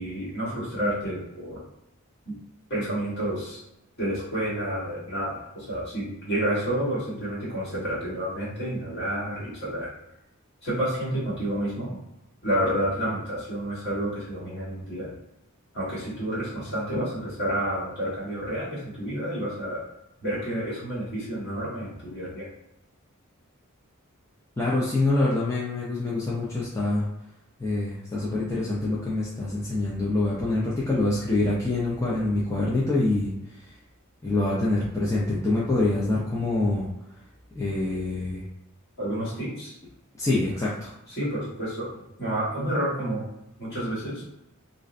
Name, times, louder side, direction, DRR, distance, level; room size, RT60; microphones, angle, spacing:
voice 1, 0.0-1.6 2.2-2.3 2.7-3.6 4.0-9.9 10.6-12.0 12.4-15.1 15.7-19.8 20.2-22.5 39.0-39.7 41.1-43.3 43.6-44.2, right 1 dB, 55° left, -8 dB, 1.4 m, -30 dB
voice 2, 24.6-27.1 27.6-33.3 34.2-36.9 37.6-38.4 40.2-40.9, left 2 dB, 15° left, -7 dB, 0.4 m, -25 dB
2.5 x 2.1 x 2.5 m, 0.87 s
head